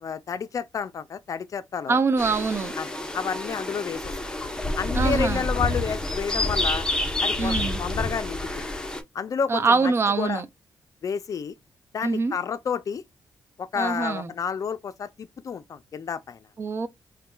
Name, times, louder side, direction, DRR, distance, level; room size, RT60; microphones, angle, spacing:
voice 1, 0.0-2.0 2.8-4.0 4.8-6.8 7.2-8.6 9.1-9.9 10.2-10.4 11.0-11.5 11.9-13.0 13.6-16.5, left 6 dB, 50° left, 0.4 m, -30 dB
voice 2, 1.9-2.7 4.9-5.4 7.4-7.8 9.5-10.5 12.0-12.4 13.8-14.3 16.6-16.9, right 4 dB, 35° right, 0.5 m, -24 dB
sound 1, 2.2-9.0, left 2 dB, 10° left, 0.8 m, -28 dB
4.0 x 2.2 x 2.2 m
cardioid pair, 95°, 8 cm